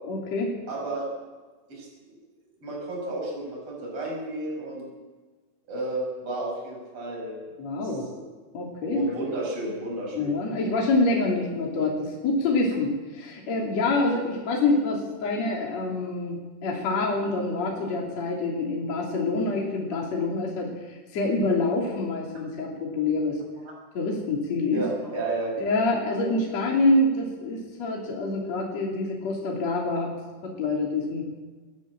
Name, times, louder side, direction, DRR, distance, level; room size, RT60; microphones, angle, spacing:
voice 1, 0.1-0.5 7.6-8.1 8.5-9.0 10.1-23.4 23.9-24.8 25.6-30.1 30.4-31.3, left 2 dB, 40° left, -2 dB, 3.8 m, -26 dB
voice 2, 0.7-1.1 1.7-2.2 2.6-4.8 5.6-7.3 7.8-8.2 8.8-10.3 24.7-25.8, right 2 dB, 30° right, -2 dB, 7.3 m, -32 dB
21.5 x 14.0 x 8.8 m, 1.3 s
omnidirectional pair, 5.1 m